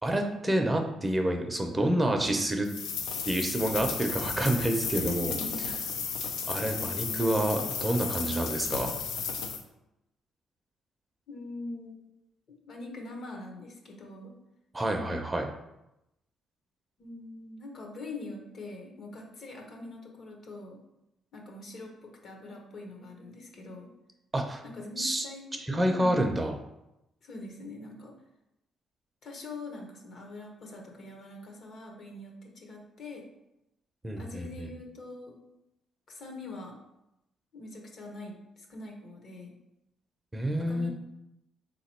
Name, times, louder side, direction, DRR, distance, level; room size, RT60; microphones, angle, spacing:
voice 1, 0.0-2.7 3.2-5.3 6.5-8.9 14.7-15.5 24.3-24.6 25.0-25.2 25.5-26.5 34.0-34.7 40.3-40.9, right 1 dB, 20° right, 3 dB, 0.5 m, -28 dB
sound 1, 2.6-9.6, left 6 dB, 90° left, 0.5 m, -34 dB
voice 2, 5.0-5.8 6.8-7.4 11.3-12.0 12.7-14.4 17.0-20.8 21.3-23.9 24.6-26.3 27.2-28.1 29.2-33.2 34.2-35.4 36.1-36.8 37.5-39.5 40.6-40.9, left 2 dB, 60° left, 1 dB, 1.0 m, -43 dB
3.7 x 2.9 x 4.3 m, 0.88 s
cardioid pair, 90°, 0 cm